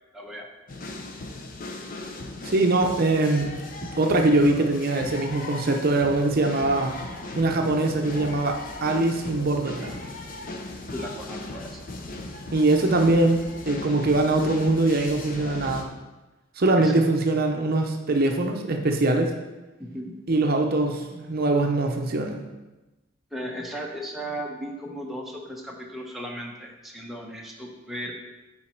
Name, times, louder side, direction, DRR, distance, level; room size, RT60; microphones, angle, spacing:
voice 1, 0.1-0.5 10.9-11.8 16.8-16.9 19.8-20.1 23.3-28.1, equal, ahead, -2 dB, 0.9 m, -36 dB
sound 1, 0.7-15.8, left 2 dB, 45° left, 0.8 m, -37 dB
voice 2, 2.4-3.5 4.0-7.0 7.4-9.9 12.5-15.9 16.6-19.3 20.3-22.4, right 2 dB, 50° right, 3 dB, 0.6 m, -22 dB
9.0 x 4.1 x 4.5 m, 1.1 s
head